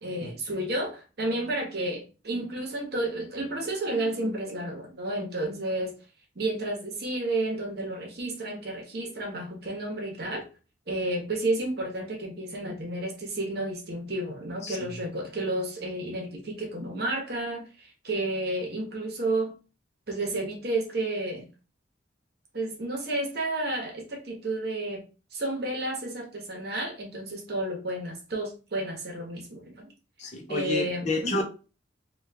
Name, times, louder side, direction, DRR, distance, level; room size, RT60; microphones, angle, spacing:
voice 1, 0.0-5.9 6.3-10.5 10.9-19.5 20.1-21.4 22.5-25.0 25.3-29.9 30.5-31.4, right 1 dB, 55° right, 1.0 m, -31 dB
voice 2, 30.2-31.4, left 2 dB, 35° left, 0.7 m, -30 dB
3.1 x 2.4 x 3.4 m
head